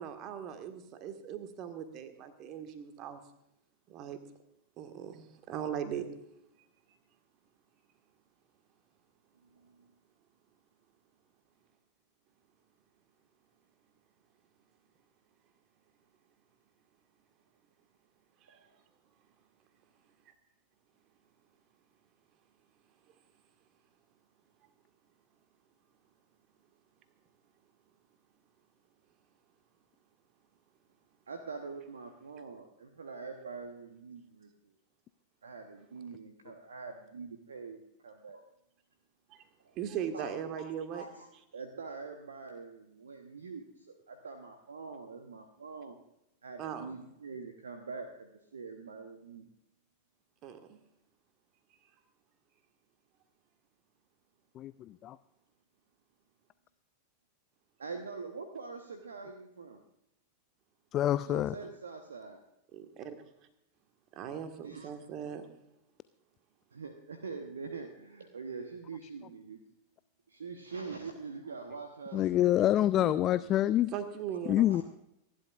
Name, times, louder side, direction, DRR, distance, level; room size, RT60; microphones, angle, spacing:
voice 1, 0.0-3.2 3.9-4.2 4.8-6.1 18.4-18.6 39.3-39.5 39.7-41.0 46.6-46.9 50.4-50.8 62.7-63.2 64.1-65.5 73.9-74.6, right 8 dB, 35° right, 7 dB, 1.7 m, -39 dB
voice 2, 9.5-9.9 18.5-18.7 31.3-34.7 35.4-38.4 39.6-39.8 40.1-40.3 40.5-41.3 41.5-46.0 46.4-49.5 57.8-59.8 61.2-62.4 64.6-64.9 66.7-69.7 70.3-73.5 74.7-74.8, right 4 dB, 70° right, 5 dB, 1.1 m, -44 dB
voice 3, 54.6-55.2 60.9-61.5 72.1-73.9 74.5-74.8, left 13 dB, 30° left, 15 dB, 0.4 m, -27 dB
27.0 x 11.5 x 2.5 m, 0.82 s
figure-of-eight pair, 90°, 0 cm